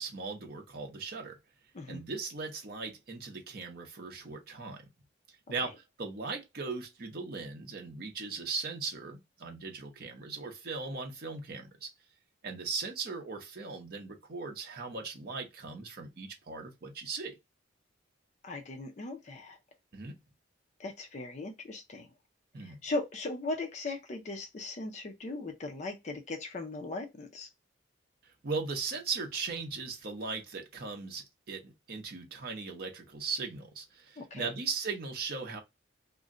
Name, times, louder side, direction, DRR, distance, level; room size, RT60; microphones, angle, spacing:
voice 1, 0.0-1.4 1.9-4.8 5.5-11.9 12.4-17.4 19.9-20.1 22.5-22.8 28.4-35.6, right 4 dB, 50° right, 0.6 m, -38 dB
voice 2, 18.4-19.6 20.8-22.1 22.6-27.5 34.2-34.5, left 2 dB, 35° left, 0.4 m, -38 dB
2.5 x 2.1 x 3.6 m
head